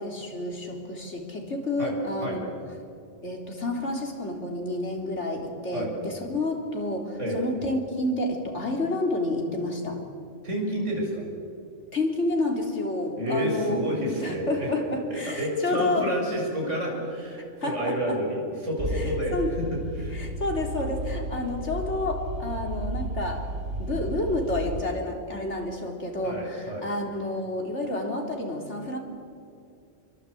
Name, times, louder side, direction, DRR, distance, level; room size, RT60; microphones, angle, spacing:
voice 1, 0.0-2.4 3.2-10.0 11.9-13.8 14.2-16.1 17.6-18.2 18.9-19.5 20.1-23.5 23.8-29.0, left 2 dB, 70° left, 1 dB, 3.9 m, -29 dB
voice 2, 10.4-11.3 13.2-14.7 15.3-20.2 26.2-26.9, equal, 85° right, -2 dB, 8.0 m, -29 dB
sound 1, 18.8-24.8, right 1 dB, 55° right, 1.8 m, -33 dB
27.5 x 23.5 x 8.5 m, 2.4 s
omnidirectional pair, 1.2 m